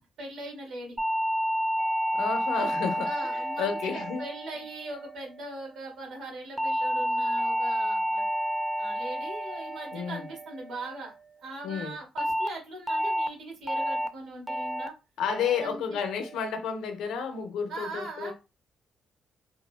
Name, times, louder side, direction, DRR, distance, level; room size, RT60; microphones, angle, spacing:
voice 1, 0.2-0.9 2.5-2.7 3.0-8.2 8.8-11.1 11.4-14.9 15.6-16.0 17.7-18.3, right 2 dB, 75° right, 1.4 m, -40 dB
sound 1, 1.0-5.4 6.6-11.0 12.2-12.5 12.9-13.3 13.7-14.1 14.5-14.9 15.3-15.7 16.1-16.5, equal, 5° right, 0.4 m, -30 dB
voice 2, 2.1-4.3 9.9-10.3 11.6-11.9 15.2-18.3, left 6 dB, 85° left, 0.5 m, -31 dB
3.1 x 2.0 x 2.2 m
cardioid pair, 90°, 0 cm